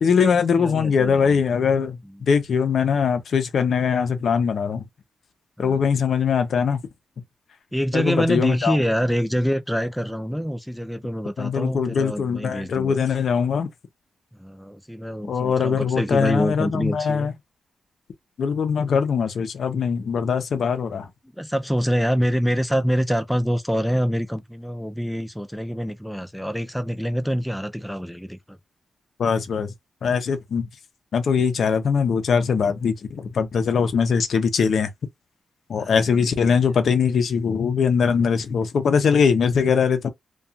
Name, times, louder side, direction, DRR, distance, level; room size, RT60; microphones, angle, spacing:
voice 1, 0.0-2.0 2.3-4.8 5.6-6.8 7.9-8.8 11.4-13.7 15.3-17.3 18.4-21.1 29.2-29.7 30.0-30.7 31.1-34.9 35.7-40.1, left 6 dB, 70° left, 0.6 m, -21 dB
voice 2, 0.6-1.4 2.1-2.3 5.6-5.8 7.7-13.0 14.4-17.3 21.4-28.6 35.8-36.2 36.5-36.7, equal, ahead, 0.5 m, -26 dB
2.4 x 2.3 x 2.7 m
cardioid pair, 65°, 0 cm